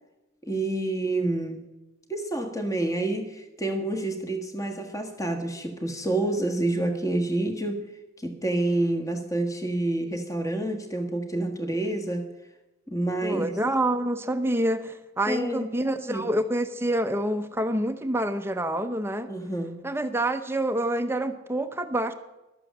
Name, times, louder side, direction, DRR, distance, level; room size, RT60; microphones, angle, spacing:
voice 1, 0.4-1.6 2.1-7.8 8.2-12.3 12.9-13.5 15.3-15.7 16.1-16.3 19.3-19.8, right 2 dB, 15° left, 4 dB, 1.5 m, -28 dB
voice 2, 13.2-19.3 19.8-22.1, right 1 dB, 10° right, 9 dB, 0.7 m, -27 dB
12.5 x 8.2 x 7.3 m, 1.0 s
head